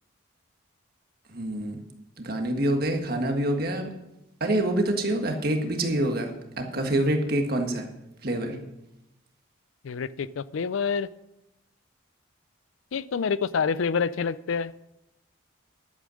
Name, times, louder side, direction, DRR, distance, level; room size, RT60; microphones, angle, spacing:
voice 1, 1.3-1.8 2.2-3.9 4.4-7.9 8.2-8.6, right 1 dB, 50° right, 4 dB, 1.6 m, -26 dB
voice 2, 9.8-11.1 12.9-14.7, left 6 dB, 75° left, 18 dB, 0.4 m, -27 dB
11.0 x 8.4 x 6.3 m, 0.89 s
head